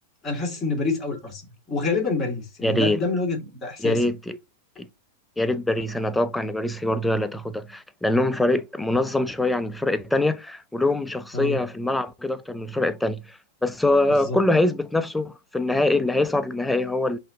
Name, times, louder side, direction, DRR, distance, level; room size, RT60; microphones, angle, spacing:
voice 1, 0.2-1.4 1.7-4.0 11.3-11.6 14.1-14.4, left 3 dB, 20° left, 2.1 m, -27 dB
voice 2, 2.6-3.0 3.8-4.4 4.8-4.9 5.4-17.2, left 2 dB, 5° left, 0.5 m, -24 dB
5.4 x 2.7 x 3.6 m
hypercardioid pair, 115°, 0 cm